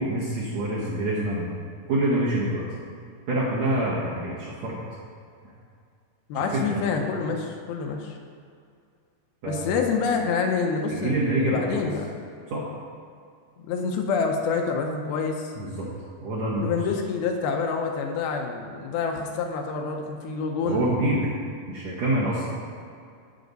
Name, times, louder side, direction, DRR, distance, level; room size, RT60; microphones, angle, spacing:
voice 1, 0.0-1.5 1.9-2.6 3.3-4.7 6.3-6.7 7.1-7.2 9.4-9.8 10.9-11.9 12.5-12.6 15.5-15.9 16.2-16.7 20.6-21.3 21.7-22.5, right 1 dB, 65° right, -6 dB, 1.8 m, -26 dB
voice 2, 6.3-8.2 9.5-12.1 13.7-15.5 16.6-20.9, left 5 dB, 80° left, 3 dB, 2.6 m, -27 dB
14.5 x 5.1 x 4.0 m, 2.3 s
omnidirectional pair, 4.6 m